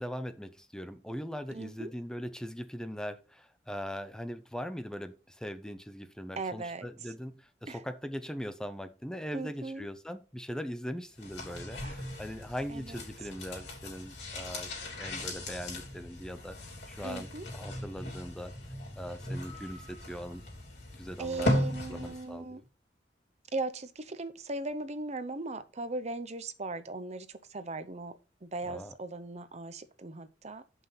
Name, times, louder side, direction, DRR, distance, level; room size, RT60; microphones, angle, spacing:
voice 1, 0.0-14.7 15.0-16.6 16.9-18.5 18.9-20.4 21.0-21.6 21.9-22.6 28.6-28.9, equal, 5° left, 0.6 m, -40 dB
voice 2, 1.5-1.9 6.4-6.9 7.7-7.8 9.3-9.9 11.8-12.0 12.7-13.0 17.0-17.5 21.2-22.6 23.5-30.6, right 3 dB, 40° right, 0.7 m, -38 dB
sound 1, 11.1-22.4 22.6-22.7, left 1 dB, 70° left, 3.1 m, -37 dB
sound 2, 19.4-20.8, left 2 dB, 90° left, 2.4 m, -54 dB
5.8 x 5.5 x 5.5 m
head